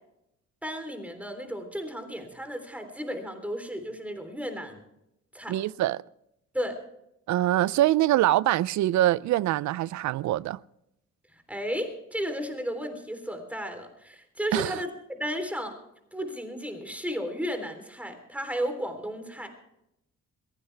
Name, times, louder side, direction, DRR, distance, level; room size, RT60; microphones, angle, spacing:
voice 1, 0.6-4.8 5.3-5.6 6.5-6.8 11.3-15.8 16.1-19.5, equal, 5° right, 3.4 m, -34 dB
voice 2, 5.5-6.0 7.3-10.6 14.5-14.8, right 14 dB, 70° right, 0.5 m, -24 dB
21.5 x 16.0 x 3.4 m
cardioid pair, 90°, 30 cm